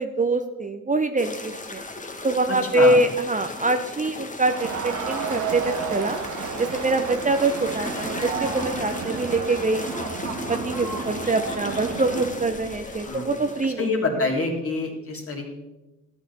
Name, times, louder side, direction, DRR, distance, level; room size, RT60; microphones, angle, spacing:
voice 1, 0.0-1.8 2.2-6.2 6.6-10.2 10.5-13.9, right 2 dB, 25° right, 7 dB, 0.9 m, -24 dB
sound 1, 1.2-13.7, left 2 dB, 20° left, 1.5 m, -36 dB
voice 2, 2.5-3.0 11.0-11.1 13.0-13.3 13.6-15.5, left 3 dB, 40° left, 0 dB, 3.1 m, -27 dB
Crowd, 4.5-12.4, right 5 dB, 65° right, 1.6 m, -32 dB
Laughter, 7.4-10.0 10.9-12.0 12.5-12.9, left 3 dB, 85° left, 2.0 m, -43 dB
13.5 x 9.0 x 4.2 m, 1.0 s
hypercardioid pair, 45°, 34 cm